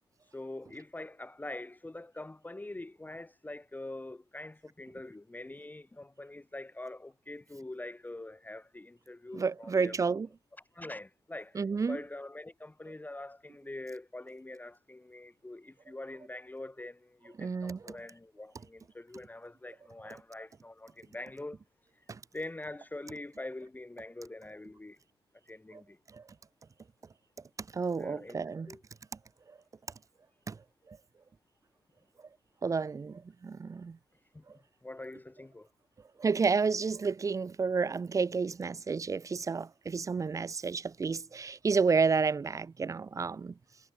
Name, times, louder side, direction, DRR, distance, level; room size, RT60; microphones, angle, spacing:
voice 1, 0.3-10.2 10.7-21.6 22.3-25.0 25.5-26.0 28.0-28.4 28.7-28.8 34.3-35.7, left 2 dB, 15° left, 1.2 m, -44 dB
voice 2, 9.3-10.3 11.6-12.0 17.4-17.8 27.7-28.7 30.5-30.6 32.6-34.0 36.2-43.5, right 5 dB, 30° right, 0.4 m, -30 dB
cardioid pair, 90°, 11 cm